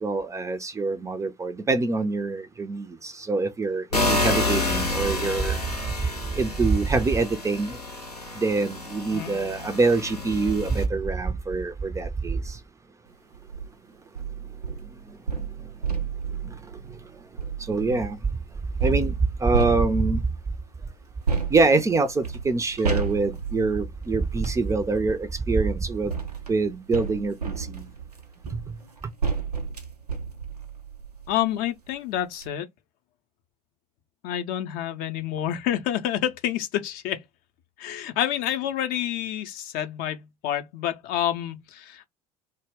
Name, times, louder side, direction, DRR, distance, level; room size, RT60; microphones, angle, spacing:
voice 1, 0.0-5.6 6.4-7.8 8.4-12.4 17.7-18.2 18.8-19.1 19.4-20.2 21.5-26.1 26.5-27.8, right 3 dB, 15° right, 0.4 m, -24 dB
sound 1, 3.9-10.9, left 2 dB, 90° left, 0.7 m, -29 dB
sound 2, 13.3-13.7 14.2-18.2 18.8-20.4 21.3-24.6 25.6-31.5 31.9-32.0 32.3-32.5, right 5 dB, 90° right, 0.5 m, -32 dB
voice 2, 31.3-32.7 34.2-37.2 37.8-42.1, left 11 dB, 50° left, 0.5 m, -28 dB
2.1 x 2.0 x 3.4 m
figure-of-eight pair, 65°, 19 cm